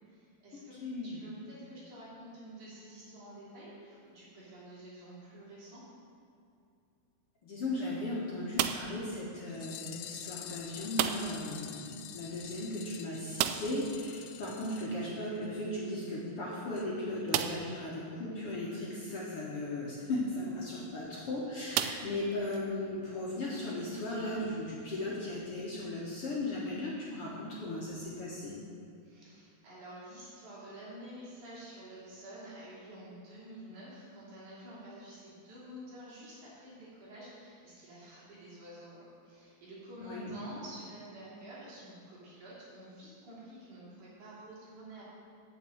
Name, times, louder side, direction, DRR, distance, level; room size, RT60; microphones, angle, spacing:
voice 1, 0.0-5.8 29.0-45.0, right 1 dB, 55° right, -8 dB, 4.4 m, -49 dB
voice 2, 0.8-1.2 7.4-28.5 40.0-40.3, left 1 dB, 55° left, -6 dB, 1.8 m, -37 dB
sound 1, 8.5-9.1 10.9-11.5 11.8-11.9 12.2-12.3 13.3-13.9 15.7-15.8 16.4-16.5 17.3-17.8 18.5-18.6 20.6-20.8 21.7-22.6, right 11 dB, 90° right, 2.5 m, -33 dB
sound 2, 9.5-15.6 15.9-16.0 16.3-16.4 16.8-16.9 17.2-17.3, left 12 dB, 85° left, 2.5 m, -47 dB
9.2 x 6.9 x 7.8 m, 2.5 s
omnidirectional pair, 4.3 m